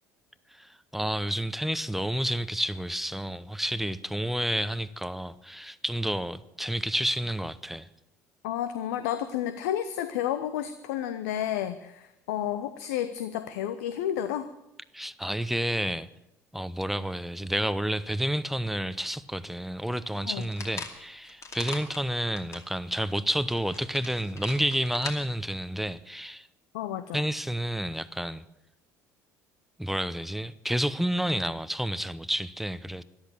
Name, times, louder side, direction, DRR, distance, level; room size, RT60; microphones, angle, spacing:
voice 1, 0.5-7.9 14.9-16.1 16.5-26.5 27.1-28.4 29.8-33.0, equal, ahead, 0.8 m, -30 dB
voice 2, 8.4-14.5 20.2-20.5 26.7-27.2, left 11 dB, 70° left, 0.8 m, -31 dB
sound 1, 20.1-22.7 23.1-23.2 23.5-25.2, left 4 dB, 35° left, 2.5 m, -41 dB
13.0 x 12.0 x 8.6 m
figure-of-eight pair, 60°, 9 cm